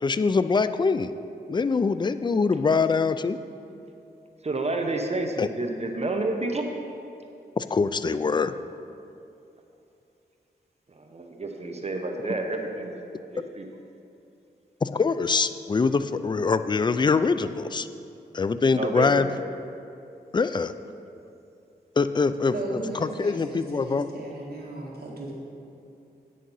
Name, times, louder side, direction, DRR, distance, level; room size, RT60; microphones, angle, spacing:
voice 1, 0.0-1.1 1.5-3.4 5.4-5.5 7.6-8.5 14.8-17.9 18.3-19.3 20.3-20.7 22.0-24.1, left 4 dB, 25° left, 12 dB, 0.4 m, -24 dB
voice 2, 4.4-6.6 10.9-13.6 18.8-19.4, right 2 dB, 35° right, 3 dB, 0.9 m, -30 dB
voice 3, 22.5-25.3, right 2 dB, 60° right, -4 dB, 2.1 m, -36 dB
9.1 x 6.5 x 5.5 m, 2.7 s
cardioid pair, 75°, 17 cm